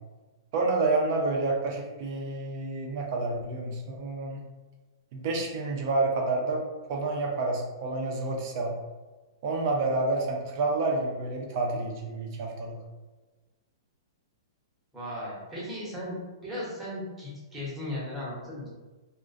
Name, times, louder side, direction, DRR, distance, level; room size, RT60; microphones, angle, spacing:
voice 1, 0.5-4.4 5.1-6.6 6.9-8.7 9.4-12.8, right 3 dB, 40° right, 0 dB, 0.5 m, -29 dB
voice 2, 14.9-16.2 16.4-18.7, left 1 dB, 10° right, -8 dB, 0.8 m, -36 dB
2.4 x 2.1 x 2.5 m, 1.2 s
hypercardioid pair, 155°, 3 cm